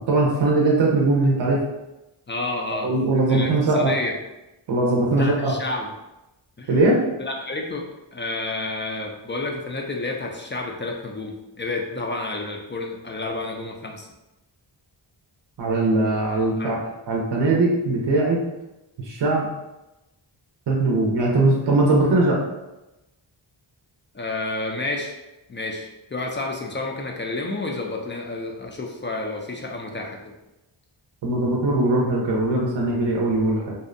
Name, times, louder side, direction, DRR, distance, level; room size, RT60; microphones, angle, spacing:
voice 1, 0.0-1.6 2.7-3.9 4.7-5.5 6.7-7.0 15.6-16.8 17.1-18.4 19.0-19.5 20.7-22.4 31.2-33.7, right 2 dB, 60° right, -2 dB, 0.6 m, -20 dB
voice 2, 2.3-2.9 3.3-4.1 5.2-5.9 6.6-6.8 7.2-14.1 16.6-16.8 24.1-25.2 25.5-30.3, left 2 dB, 25° left, 1 dB, 0.3 m, -30 dB
2.6 x 2.1 x 2.5 m, 0.97 s
cardioid pair, 55°, 49 cm